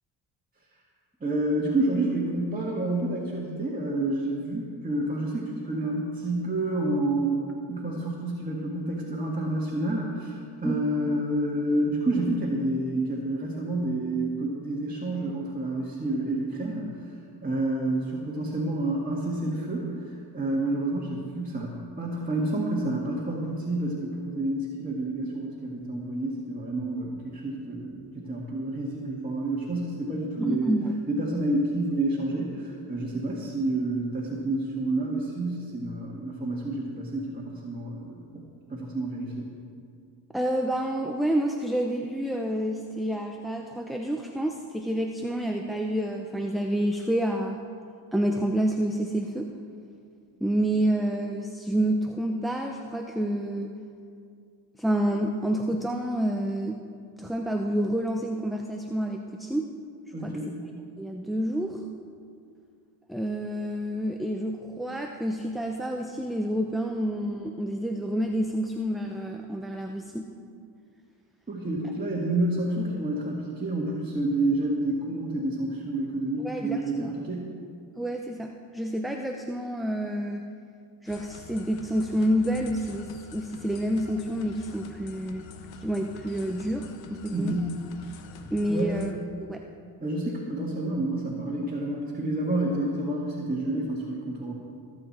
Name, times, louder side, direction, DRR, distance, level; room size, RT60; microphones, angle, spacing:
voice 1, 1.2-7.4 7.7-30.7 31.1-38.4 38.7-39.5 60.1-60.6 71.5-77.6 87.3-87.8 88.7-89.1 90.0-94.5, right 1 dB, 20° right, -5 dB, 2.0 m, -29 dB
voice 2, 30.4-30.9 40.3-47.6 48.1-49.5 50.4-53.7 54.8-56.8 57.2-59.7 60.2-60.5 61.0-61.8 63.1-70.3 76.4-77.1 78.0-80.5 81.0-85.5 85.8-87.6 88.5-89.1 89.4-89.6, right 1 dB, ahead, 2 dB, 0.7 m, -28 dB
sound 1, 81.1-89.1, left 5 dB, 70° left, 1.1 m, -46 dB
20.5 x 8.0 x 4.4 m, 2.3 s
cardioid pair, 85°, 46 cm